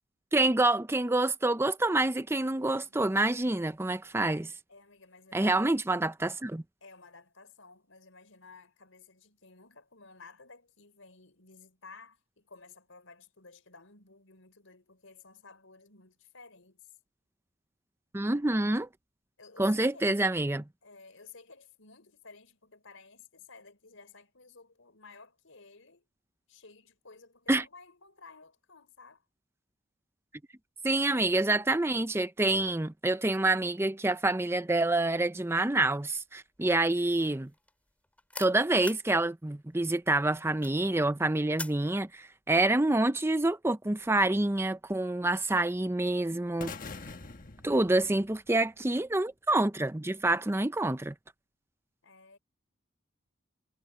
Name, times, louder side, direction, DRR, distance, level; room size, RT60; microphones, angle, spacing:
voice 1, 0.3-4.5 5.3-6.6 18.1-18.9 19.6-20.6 27.5-27.6 30.8-37.5 38.4-46.7 47.6-51.1, right 2 dB, 15° right, 0.6 m, -27 dB
voice 2, 4.7-5.7 6.8-16.9 19.4-20.2 20.8-26.1 26.5-29.2 47.8-48.0 52.0-52.4, left 4 dB, 90° left, 4.6 m, -54 dB
sound 1, 35.5-35.9 36.2-39.1 39.5-41.9, left 2 dB, 10° left, 2.4 m, -44 dB
sound 2, 46.6-48.7, left 4 dB, 45° left, 1.4 m, -44 dB
head